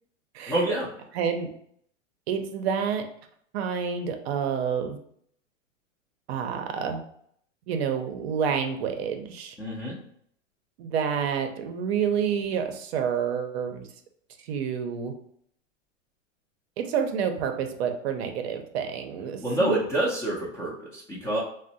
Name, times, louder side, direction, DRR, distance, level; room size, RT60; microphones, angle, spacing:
voice 1, 0.5-0.9 9.6-10.0 19.4-21.4, right 1 dB, 10° left, -5 dB, 0.4 m, -27 dB
voice 2, 1.1-1.5 2.3-3.0 3.5-5.0 6.3-7.0 7.7-9.6 10.8-13.9 14.5-15.1 16.8-19.8, right 7 dB, 55° right, 6 dB, 0.6 m, -28 dB
2.6 x 2.1 x 3.9 m, 0.67 s
hypercardioid pair, 115°, 38 cm